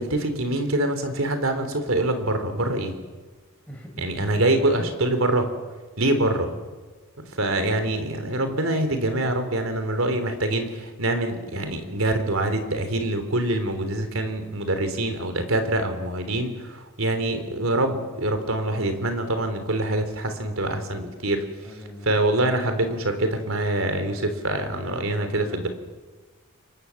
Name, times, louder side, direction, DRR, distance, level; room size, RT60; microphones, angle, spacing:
voice 1, 0.0-3.0 4.0-5.5 6.0-6.5 7.4-21.4 22.0-25.7, right 1 dB, 70° right, 8 dB, 3.5 m, -25 dB
voice 2, 3.7-4.4 4.8-4.9 21.6-22.2 24.6-25.7, equal, 5° left, -1 dB, 4.8 m, -41 dB
29.0 x 24.0 x 7.2 m, 1.3 s
head